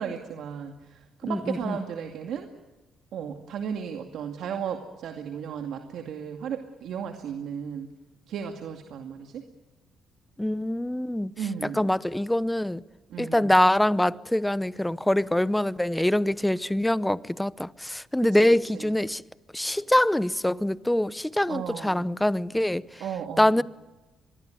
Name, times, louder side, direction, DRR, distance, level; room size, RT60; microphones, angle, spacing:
voice 1, 0.0-2.5 3.1-7.9 8.3-9.4 11.4-11.9 13.1-13.5 18.2-18.5 18.7-18.9 21.5-22.1 23.0-23.6, right 7 dB, 75° right, 2.3 m, -35 dB
voice 2, 1.2-1.7 10.4-11.3 11.7-12.8 13.2-19.2 19.5-23.0 23.4-23.6, left 1 dB, 5° left, 0.8 m, -24 dB
24.5 x 22.0 x 9.3 m
cardioid pair, 90°, 0 cm